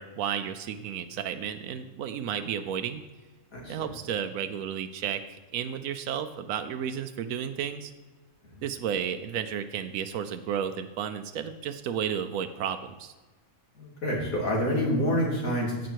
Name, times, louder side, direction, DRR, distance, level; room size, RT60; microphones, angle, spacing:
voice 1, 0.0-3.0 3.7-7.9 8.6-13.1, right 8 dB, 90° right, 8 dB, 1.1 m, -32 dB
voice 2, 3.5-4.0 8.4-8.6 13.7-15.9, equal, 90° left, -2 dB, 3.0 m, -28 dB
15.5 x 5.2 x 4.6 m, 1.3 s
omnidirectional pair, 1.4 m